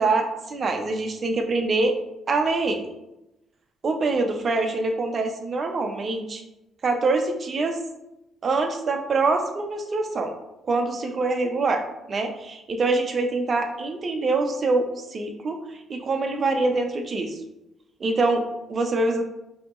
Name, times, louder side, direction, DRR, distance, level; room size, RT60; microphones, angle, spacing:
voice 1, 0.0-2.0 2.3-2.8 3.8-6.4 6.8-7.8 8.4-10.3 10.6-11.8 12.1-17.4 18.0-19.2, right 3 dB, 45° right, 4 dB, 0.6 m, -24 dB
5.0 x 2.8 x 2.5 m, 0.92 s
cardioid pair, 90°, 0 cm